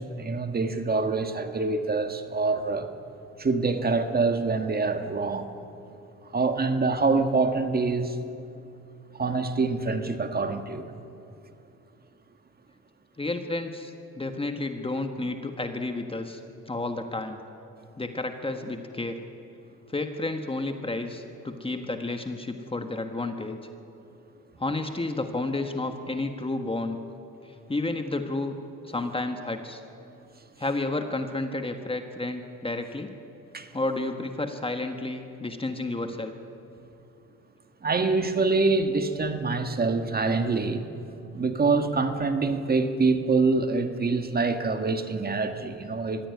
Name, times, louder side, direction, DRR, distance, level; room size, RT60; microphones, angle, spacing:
voice 1, 0.0-2.9 3.4-5.5 6.3-8.2 9.1-10.9 33.5-33.7 37.8-40.8 41.3-46.3, right 3 dB, 30° right, 7 dB, 1.7 m, -25 dB
voice 2, 13.2-16.4 16.7-17.4 18.0-19.2 19.9-23.6 24.6-27.0 27.7-28.6 28.8-29.8 30.6-33.1 33.7-36.3, left 2 dB, 20° left, 6 dB, 1.5 m, -31 dB
23.0 x 15.5 x 9.6 m, 2.7 s
cardioid pair, 90°, 30 cm